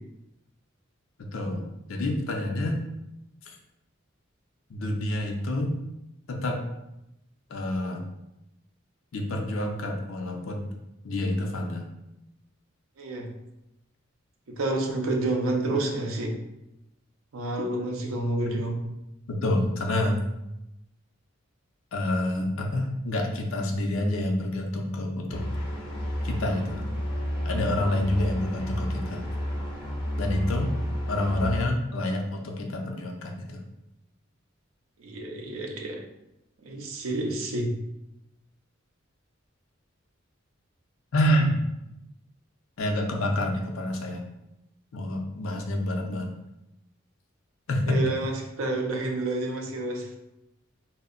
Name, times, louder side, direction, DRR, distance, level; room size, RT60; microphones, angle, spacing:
voice 1, 1.2-2.8 4.7-5.7 6.3-6.6 7.5-8.0 9.1-10.7 11.0-11.9 19.3-20.2 21.9-25.4 26.2-26.8 27.4-29.2 30.2-30.7 31.1-33.6 41.1-41.6 42.8-44.2 44.9-46.3 47.7-48.0, left 1 dB, 75° left, 2 dB, 0.5 m, -28 dB
voice 2, 13.0-13.3 14.5-16.3 17.3-18.9 35.0-36.0 36.6-37.7 47.9-50.2, right 2 dB, 90° right, 1 dB, 0.5 m, -29 dB
sound 1, 25.3-31.6, equal, 25° left, 0.6 m, -31 dB
2.1 x 2.1 x 3.6 m, 0.88 s
head